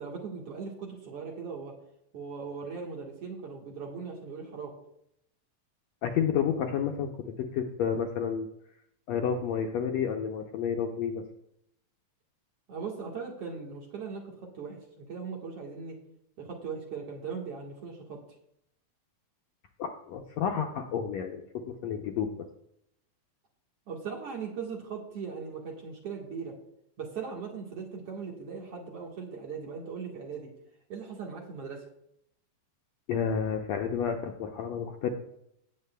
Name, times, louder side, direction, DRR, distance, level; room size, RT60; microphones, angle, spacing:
voice 1, 0.0-1.7 2.1-4.7 12.7-16.0 16.4-18.2 23.9-26.5 27.0-30.5 30.9-31.9, right 5 dB, 55° right, 0 dB, 2.1 m, -39 dB
voice 2, 6.0-8.5 9.1-11.2 19.8-22.5 33.1-35.1, left 7 dB, 75° left, 3 dB, 1.6 m, -30 dB
17.5 x 8.2 x 2.2 m, 0.75 s
omnidirectional pair, 3.7 m